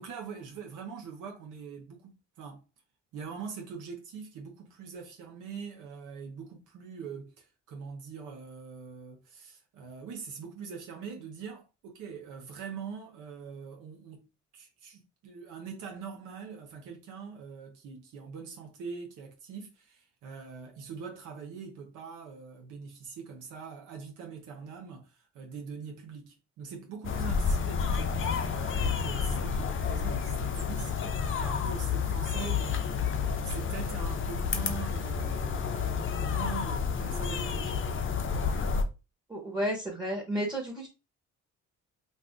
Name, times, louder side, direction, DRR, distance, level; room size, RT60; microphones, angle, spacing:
voice 1, 0.0-2.6 3.1-14.3 14.5-33.1 33.4-37.8, right 6 dB, 80° right, 0.8 m, -43 dB
sound 1, 27.0-38.8, left 6 dB, 40° left, 0.5 m, -30 dB
voice 2, 39.3-40.9, equal, 15° right, 1.2 m, -32 dB
2.6 x 2.4 x 3.5 m
cardioid pair, 90°, 30 cm